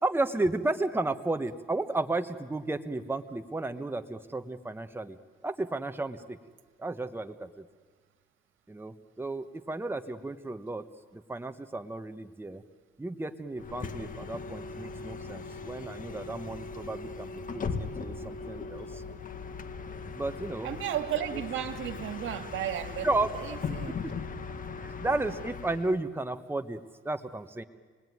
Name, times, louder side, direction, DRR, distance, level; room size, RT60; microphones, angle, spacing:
voice 1, 0.0-5.2 5.4-6.4 6.8-7.7 8.7-10.9 11.1-12.6 13.0-19.0 20.1-20.7 21.3-21.4 23.0-23.7 24.0-24.1 24.8-27.6, right 2 dB, 10° right, 8 dB, 1.2 m, -33 dB
Bus, 13.6-26.0, left 4 dB, 45° left, 1.7 m, -39 dB
voice 2, 20.6-24.0, right 10 dB, 80° right, 8 dB, 1.9 m, -34 dB
27.5 x 20.5 x 9.6 m, 1.5 s
cardioid pair, 90°, 20 cm